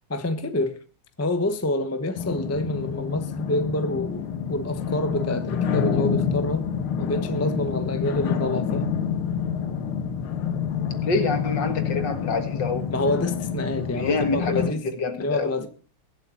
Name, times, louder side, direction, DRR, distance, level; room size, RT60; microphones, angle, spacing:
voice 1, 0.1-0.8 1.2-6.7 7.0-8.9 12.9-14.9 15.2-15.7, left 1 dB, 10° left, 0.7 m, -27 dB
sound 1, 2.2-14.7, left 7 dB, 80° left, 2.1 m, -28 dB
voice 2, 11.0-12.8 13.9-14.7 15.0-15.5, left 3 dB, 55° left, 2.3 m, -26 dB
22.5 x 8.1 x 4.4 m
omnidirectional pair, 2.3 m